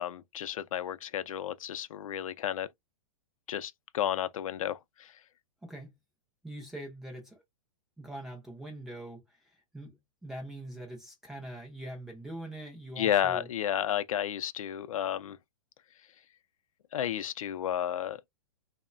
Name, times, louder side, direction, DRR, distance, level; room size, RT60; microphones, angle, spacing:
voice 1, 0.0-2.7 3.5-5.1 13.0-15.4 16.9-18.2, left 10 dB, 80° left, 0.4 m, -32 dB
voice 2, 5.6-5.9 6.4-7.4 8.0-13.5, right 1 dB, ahead, 0.4 m, -43 dB
2.9 x 2.1 x 2.4 m
hypercardioid pair, 170°, 17 cm